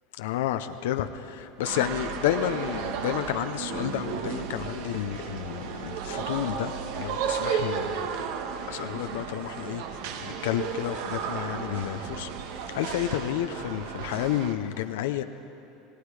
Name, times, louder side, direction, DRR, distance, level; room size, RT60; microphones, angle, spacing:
voice 1, 0.2-8.1 8.7-12.3 12.7-15.2, left 12 dB, 85° left, 8 dB, 0.7 m, -31 dB
sound 1, 1.6-14.5, right 7 dB, 75° right, 1.6 m, -33 dB
30.0 x 18.5 x 4.9 m, 2.8 s
supercardioid pair, 145°, 0 cm